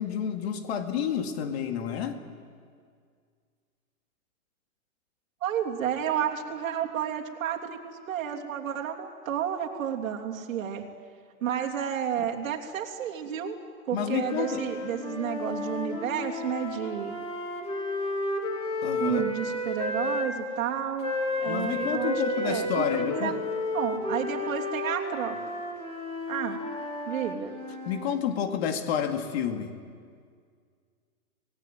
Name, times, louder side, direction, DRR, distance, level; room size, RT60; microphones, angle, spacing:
voice 1, 0.0-2.2 13.9-14.6 18.8-19.2 21.5-23.4 27.9-29.8, left 8 dB, 45° left, 6 dB, 2.2 m, -30 dB
voice 2, 5.4-10.8 11.4-13.6 13.9-17.1 19.0-21.1 21.4-23.4 23.7-25.4 26.3-26.6 27.1-27.5, right 9 dB, 60° right, 1 dB, 3.2 m, -31 dB
sound 1, 14.0-20.3 21.0-28.1, left 2 dB, 10° left, 2.3 m, -32 dB
26.5 x 18.5 x 9.4 m, 2.1 s
hypercardioid pair, 155°, 45 cm